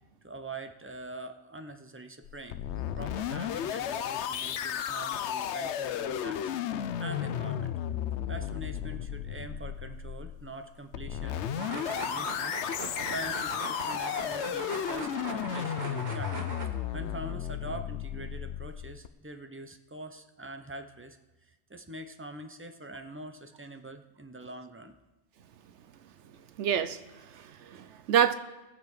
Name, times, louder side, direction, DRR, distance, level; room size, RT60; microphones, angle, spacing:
voice 1, 0.2-2.6 3.0-6.4 6.7-7.7 8.3-16.4 16.9-24.9, right 2 dB, 15° right, 7 dB, 0.7 m, -44 dB
sound 1, 2.2-19.1, left 9 dB, 80° left, 0.9 m, -34 dB
sound 2, 11.5-16.7, right 2 dB, 40° right, 1.7 m, -39 dB
voice 2, 26.6-28.3, right 9 dB, 90° right, 12 dB, 1.0 m, -28 dB
20.5 x 6.9 x 4.8 m, 1.1 s
omnidirectional pair, 1.1 m